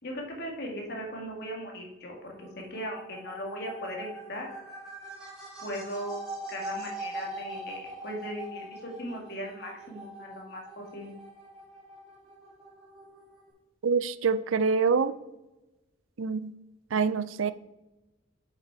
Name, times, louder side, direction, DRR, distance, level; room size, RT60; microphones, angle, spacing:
voice 1, 0.0-4.5 5.6-11.1, equal, 50° left, 0 dB, 1.9 m, -38 dB
sound 1, 2.2-13.5, right 2 dB, 5° right, 3.0 m, -42 dB
voice 2, 13.8-15.1 16.2-16.5 16.9-17.5, right 5 dB, 75° right, 14 dB, 0.5 m, -25 dB
7.6 x 5.9 x 4.7 m, 1.0 s
head